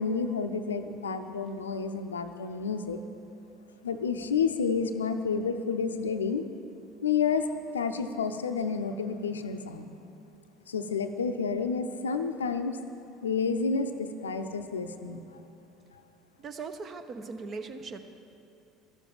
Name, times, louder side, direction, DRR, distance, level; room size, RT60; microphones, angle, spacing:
voice 1, 0.0-3.0 3.8-6.4 7.0-7.5 7.7-9.9 10.7-12.8 13.2-15.2, left 5 dB, 80° left, 8 dB, 0.6 m, -30 dB
voice 2, 16.4-18.1, right 4 dB, 40° right, 7 dB, 0.9 m, -39 dB
12.5 x 7.2 x 8.7 m, 2.8 s
figure-of-eight pair, 65°, 0 cm